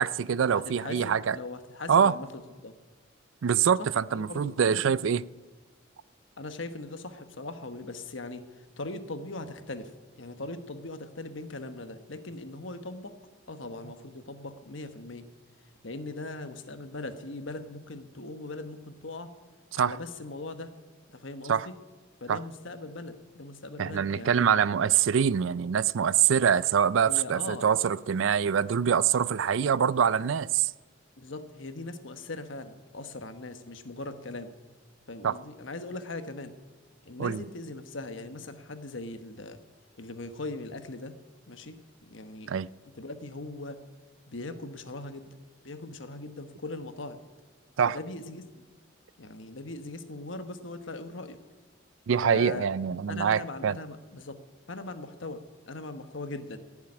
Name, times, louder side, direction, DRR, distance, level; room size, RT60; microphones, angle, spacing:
voice 1, 0.0-1.4 1.9-2.1 3.4-5.2 19.7-20.0 21.5-21.7 22.3-22.4 23.8-30.7 35.2-35.3 37.2-37.4 42.5-42.7 47.8-48.0 52.1-53.8, right 7 dB, 80° right, 0.4 m, -24 dB
voice 2, 0.5-2.7 3.8-3.9 4.1-4.9 6.4-9.9 10.2-13.1 13.5-15.3 15.8-19.3 19.8-20.7 21.1-21.7 22.2-24.5 27.0-27.7 31.2-34.5 35.1-36.5 37.0-39.6 40.0-41.1 41.5-41.7 42.0-42.5 42.9-43.8 44.3-45.3 45.6-47.2 47.8-48.6 49.2-51.4 52.2-52.7 53.1-54.4 54.7-56.6, left 2 dB, 75° left, 1.2 m, -40 dB
15.5 x 7.3 x 9.7 m
head